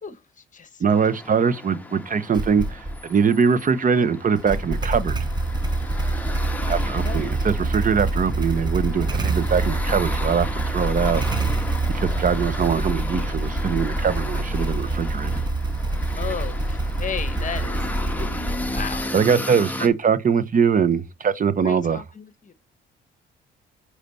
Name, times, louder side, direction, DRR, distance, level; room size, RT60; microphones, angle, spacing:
voice 1, 0.0-0.8 7.0-7.3 12.1-12.2 16.0-17.9 18.1-18.4 18.7-19.1 19.8-20.1 21.6-22.5, left 7 dB, 40° left, 1.3 m, -35 dB
voice 2, 0.8-5.2 6.7-11.2 11.9-15.4 19.1-22.0, right 6 dB, 45° right, 0.9 m, -22 dB
sound 1, 0.9-19.9, left 2 dB, 10° left, 1.6 m, -35 dB
Motorcycle / Engine starting, 2.3-3.0 4.4-19.3, right 2 dB, 20° right, 1.2 m, -26 dB
10.5 x 5.0 x 4.2 m
cardioid pair, 90°, 20 cm